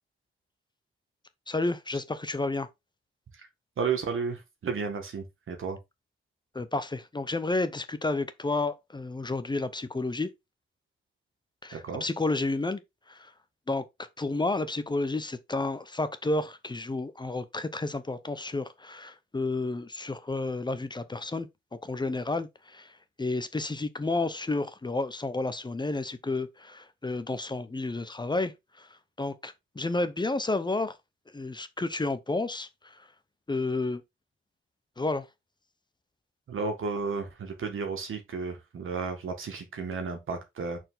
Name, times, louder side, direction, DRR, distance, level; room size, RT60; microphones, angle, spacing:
voice 1, 1.5-2.7 6.5-10.3 11.6-12.8 13.1-13.3 13.7-13.8 14.2-21.5 21.8-22.9 23.2-28.9 29.2-31.0 31.3-32.9 33.5-34.0 35.0-35.3, left 2 dB, 20° left, 0.8 m, -31 dB
voice 2, 3.8-5.8 11.7-12.1 36.5-40.8, right 5 dB, 85° right, 1.9 m, -33 dB
6.1 x 4.5 x 3.9 m
wide cardioid pair, 125°, 20 cm